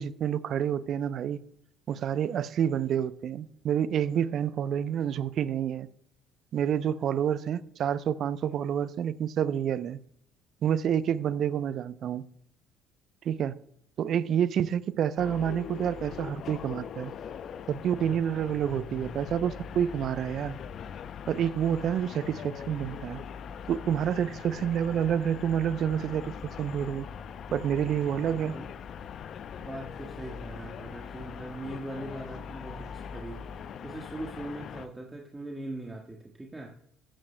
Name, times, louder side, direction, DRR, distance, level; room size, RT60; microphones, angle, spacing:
voice 1, 0.0-1.4 1.9-5.9 6.5-10.0 10.6-12.3 13.2-13.6 14.0-17.1 17.7-20.6 21.3-23.2 23.7-27.1 27.5-28.6, right 9 dB, 50° right, 0.5 m, -28 dB
sound 1, 15.2-34.9, left 7 dB, 50° left, 0.6 m, -41 dB
voice 2, 29.6-33.4 33.8-36.7, right 1 dB, 15° right, 1.5 m, -40 dB
14.5 x 12.5 x 2.2 m
hypercardioid pair, 55°, 0 cm